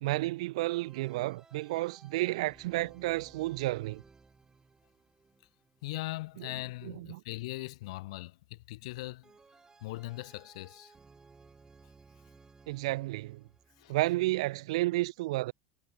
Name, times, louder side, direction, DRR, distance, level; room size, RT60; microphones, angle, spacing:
voice 1, 0.0-4.0 6.4-6.5 6.8-7.2 12.7-13.5 13.9-15.5, right 19 dB, 80° right, 0.4 m, -31 dB
sound 1, 0.7-6.8 9.2-14.6, right 4 dB, 20° right, 2.4 m, -60 dB
voice 2, 5.8-9.3 9.8-10.9 13.8-14.0, left 20 dB, 80° left, 1.2 m, -40 dB
hypercardioid pair, 90°, 3 cm